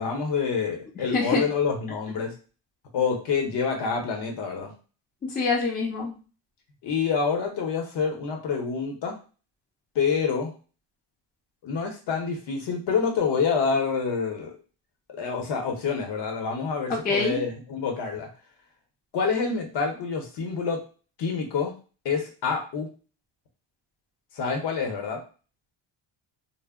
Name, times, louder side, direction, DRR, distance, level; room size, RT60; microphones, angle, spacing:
voice 1, 0.0-2.3 2.9-4.7 6.8-9.2 9.9-10.5 11.6-14.5 15.2-18.3 19.1-20.8 21.2-21.7 22.0-22.9 24.3-25.2, left 5 dB, 60° left, 2 dB, 0.8 m, -27 dB
voice 2, 1.1-1.4 5.2-6.1 16.9-17.4, left 3 dB, 20° left, -2 dB, 0.4 m, -25 dB
2.1 x 2.0 x 3.5 m, 0.35 s
cardioid pair, 145°, 47 cm